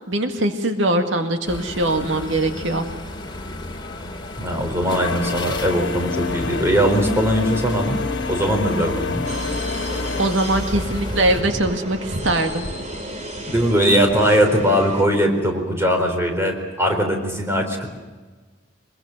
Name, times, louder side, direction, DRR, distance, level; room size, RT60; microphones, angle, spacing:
voice 1, 0.1-2.9 10.2-12.7, right 1 dB, 85° right, 6 dB, 2.0 m, -22 dB
sound 1, 1.4-11.4, left 2 dB, 25° left, 2.7 m, -32 dB
voice 2, 4.4-8.0 8.3-9.2 13.5-17.9, equal, 15° right, 3 dB, 4.2 m, -20 dB
sound 2, 4.9-10.3, left 4 dB, 70° left, 1.9 m, -29 dB
sound 3, 9.3-15.0, equal, 40° right, 2.5 m, -32 dB
24.5 x 22.0 x 6.6 m, 1.4 s
head